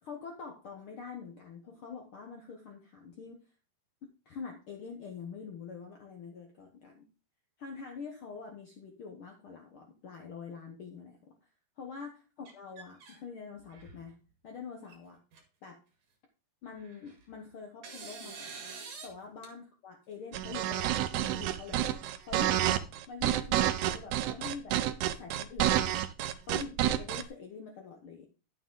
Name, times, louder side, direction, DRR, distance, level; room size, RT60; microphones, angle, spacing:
voice 1, 0.0-3.4 4.2-7.0 7.6-11.2 11.8-14.2 14.4-15.2 15.6-15.8 16.6-18.6 19.0-21.8 22.2-24.8 25.2-26.1 26.5-28.3, left 5 dB, 70° left, 3 dB, 1.2 m, -45 dB
sound 1, 12.5-13.2 13.6-14.1 14.9-15.0 15.3-15.4 16.7-17.3 17.8-19.1 19.4-19.5 20.7-21.5, right 5 dB, 60° right, 3.0 m, -47 dB
sound 2, 20.3-27.2, right 12 dB, 75° right, 1.9 m, -29 dB
11.0 x 7.0 x 3.8 m, 0.34 s
omnidirectional pair, 3.9 m